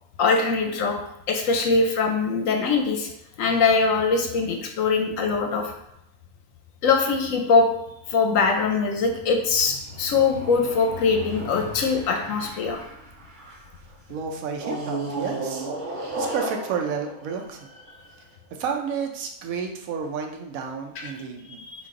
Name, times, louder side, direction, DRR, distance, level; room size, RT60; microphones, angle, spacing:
voice 1, 0.2-1.0 1.3-3.1 3.4-5.7 6.8-7.7 8.1-12.8 21.7-21.9, left 4 dB, 70° left, 3 dB, 0.9 m, -22 dB
sound 1, 9.1-13.8 14.5-18.1, right 2 dB, 55° right, 1.2 m, -35 dB
voice 2, 14.1-17.6 18.6-21.9, right 6 dB, 70° right, 3 dB, 1.0 m, -31 dB
4.1 x 2.6 x 3.7 m, 0.83 s
omnidirectional pair, 1.6 m